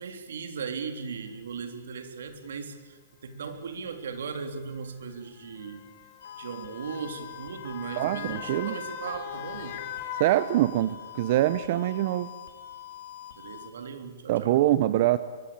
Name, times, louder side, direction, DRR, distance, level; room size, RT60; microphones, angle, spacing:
voice 1, 0.0-5.9 6.4-9.8 13.4-14.6, right 5 dB, 80° right, 8 dB, 3.6 m, -38 dB
Motor vehicle (road) / Siren, 1.1-1.2 2.2-2.4 3.5-11.1 11.5-11.6, left 9 dB, 35° left, 2.9 m, -42 dB
sound 1, 6.2-13.7, left 11 dB, 75° left, 5.5 m, -44 dB
voice 2, 8.0-8.7 10.2-12.3 14.3-15.2, right 14 dB, 40° right, 14 dB, 0.8 m, -24 dB
23.5 x 21.0 x 8.8 m, 1.4 s
hypercardioid pair, 165°, 0 cm